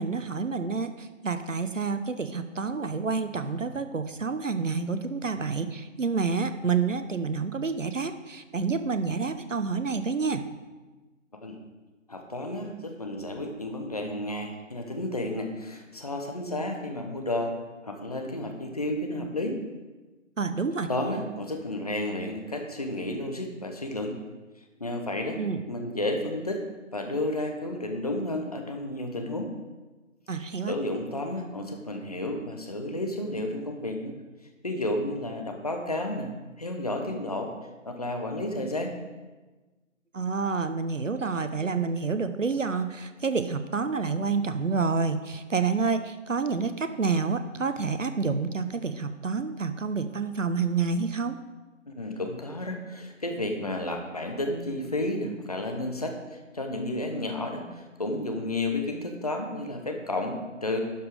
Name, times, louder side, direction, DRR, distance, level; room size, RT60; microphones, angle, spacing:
voice 1, 0.0-10.4 20.4-20.9 25.4-25.6 30.3-30.7 40.1-51.4, right 4 dB, 70° right, 10 dB, 0.9 m, -28 dB
voice 2, 12.1-17.5 17.8-19.6 20.9-24.1 24.8-25.4 25.7-26.6 26.9-29.5 30.7-34.1 34.6-36.3 36.6-37.5 37.9-38.9 51.9-60.8, left 1 dB, 30° left, 3 dB, 0.9 m, -32 dB
11.5 x 5.4 x 5.0 m, 1.2 s
figure-of-eight pair, 155°, 40 cm